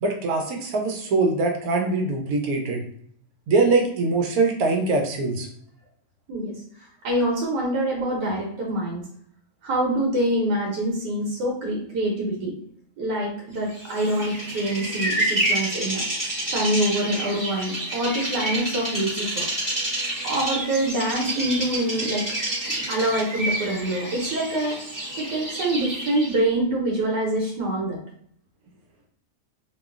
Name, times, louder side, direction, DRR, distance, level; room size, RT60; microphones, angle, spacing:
voice 1, 0.0-2.8 3.5-5.5, right 3 dB, 70° right, 2 dB, 1.0 m, -22 dB
voice 2, 7.0-9.0 9.6-12.5 13.0-16.0 16.5-19.5 20.2-22.2 22.9-24.8 25.2-28.0, right 1 dB, 85° right, -2 dB, 1.4 m, -25 dB
Bird vocalization bird call bird song, 13.8-26.4, right 1 dB, 15° right, 0.7 m, -29 dB
3.0 x 2.4 x 2.3 m, 0.65 s
omnidirectional pair, 1.8 m